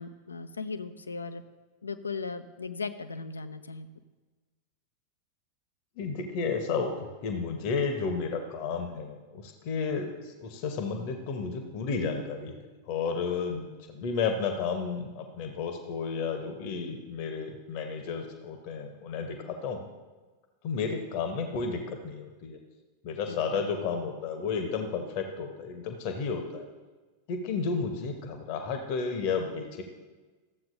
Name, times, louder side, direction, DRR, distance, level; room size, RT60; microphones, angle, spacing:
voice 1, 0.0-1.4 1.8-3.9 23.3-23.6, left 4 dB, 75° left, 11 dB, 0.5 m, -37 dB
voice 2, 6.0-19.8 20.6-22.6 23.0-26.7 27.3-29.8, left 5 dB, 45° left, 5 dB, 0.9 m, -32 dB
14.0 x 7.5 x 2.6 m, 1.3 s
figure-of-eight pair, 90°, 0 cm